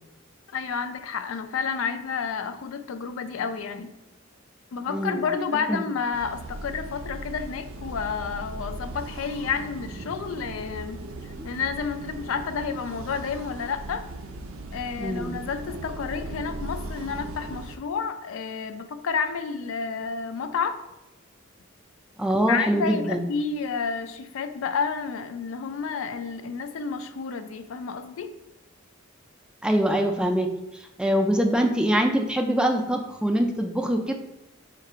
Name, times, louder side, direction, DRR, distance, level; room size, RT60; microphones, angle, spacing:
voice 1, 0.5-4.0 4.7-14.0 14.7-20.8 22.4-28.3, left 5 dB, 75° left, 8 dB, 0.4 m, -30 dB
voice 2, 4.9-5.2 5.7-5.8 15.0-15.4 22.2-23.3 29.6-30.5 31.0-34.1, equal, 5° right, 3 dB, 0.3 m, -23 dB
sound 1, 6.1-17.8, right 2 dB, 85° right, 0.4 m, -38 dB
3.7 x 2.5 x 4.2 m, 0.95 s
head